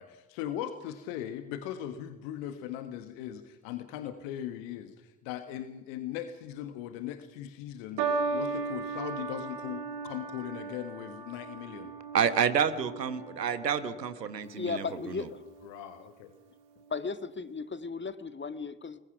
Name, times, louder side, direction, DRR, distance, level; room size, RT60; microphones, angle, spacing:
voice 1, 0.0-11.9 15.6-16.3, left 11 dB, 65° left, 9 dB, 1.6 m, -39 dB
sound 1, 8.0-14.5 15.3-15.8, right 4 dB, 60° right, 2.5 m, -36 dB
voice 2, 12.1-15.2, right 7 dB, 85° right, 14 dB, 1.2 m, -29 dB
voice 3, 14.5-15.4 16.9-19.0, left 4 dB, 25° left, 12 dB, 1.7 m, -36 dB
29.5 x 21.0 x 6.0 m, 1.1 s
figure-of-eight pair, 45°, 48 cm